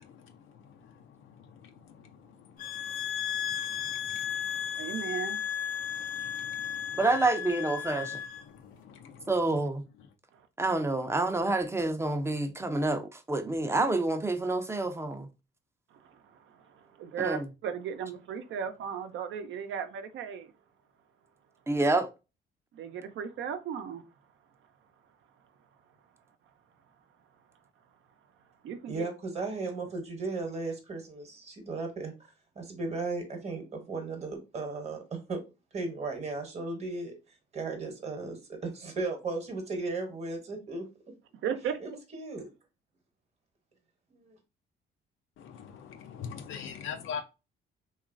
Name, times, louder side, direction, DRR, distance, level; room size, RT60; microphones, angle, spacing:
voice 1, 0.0-4.9 5.8-7.0 8.0-8.1 8.4-9.3 45.4-47.2, left 7 dB, 80° left, 0.5 m, -45 dB
sound 1, 2.6-8.4, left 9 dB, 45° left, 0.7 m, -34 dB
voice 2, 4.8-5.9 15.9-20.5 22.7-24.0 28.6-29.0 41.4-41.8, right 7 dB, 75° right, 0.5 m, -36 dB
voice 3, 7.0-8.2 9.3-9.8 10.6-15.3 17.2-17.4 21.7-22.1, right 2 dB, 15° right, 0.4 m, -28 dB
voice 4, 28.9-32.1 32.5-35.4 35.7-37.2 37.5-40.9 41.8-42.5 44.1-44.4, right 3 dB, 35° right, 0.9 m, -36 dB
2.9 x 2.4 x 2.5 m
cardioid pair, 90°, 20 cm